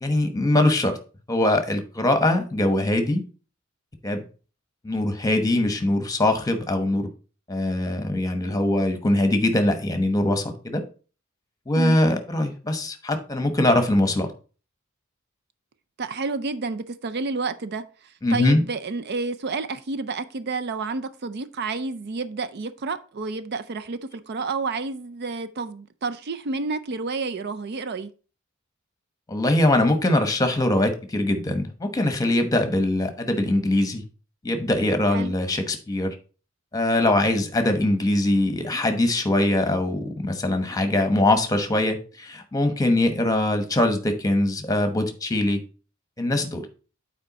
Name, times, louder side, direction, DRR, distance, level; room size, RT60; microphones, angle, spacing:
voice 1, 0.0-1.0 1.3-3.2 4.0-4.2 4.8-7.1 7.5-10.8 11.7-14.3 18.2-18.6 29.3-34.0 34.4-36.2 36.7-45.6 46.2-46.7, left 1 dB, 15° left, 1.0 m, -22 dB
voice 2, 16.0-28.1 35.1-35.3, right 4 dB, 50° right, 0.5 m, -30 dB
8.7 x 4.4 x 4.1 m
head